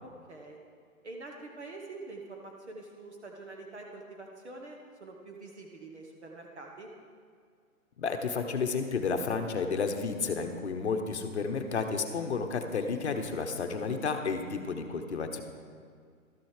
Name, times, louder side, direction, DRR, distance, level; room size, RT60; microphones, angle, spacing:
voice 1, 0.0-0.6 1.0-6.9, right 2 dB, 50° right, 1 dB, 1.1 m, -45 dB
voice 2, 8.0-15.4, left 5 dB, 50° left, 5 dB, 1.0 m, -31 dB
12.5 x 7.5 x 4.9 m, 2.1 s
hypercardioid pair, 180°, 44 cm